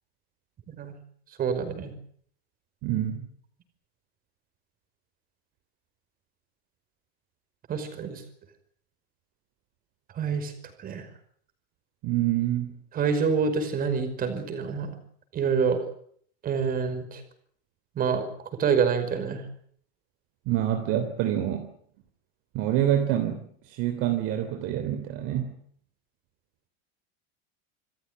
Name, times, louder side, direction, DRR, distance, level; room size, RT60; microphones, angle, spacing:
voice 1, 1.4-1.9 7.7-8.2 10.2-10.5 10.8-11.1 13.0-14.9 15.3-15.8 16.4-17.2 18.0-18.3 18.6-19.4, right 6 dB, 25° right, 9 dB, 5.4 m, -26 dB
voice 2, 2.8-3.3 12.0-12.8 20.4-21.7 22.5-25.5, right 11 dB, 45° right, 7 dB, 3.3 m, -27 dB
27.5 x 15.0 x 9.7 m, 0.62 s
supercardioid pair, 155°, 33 cm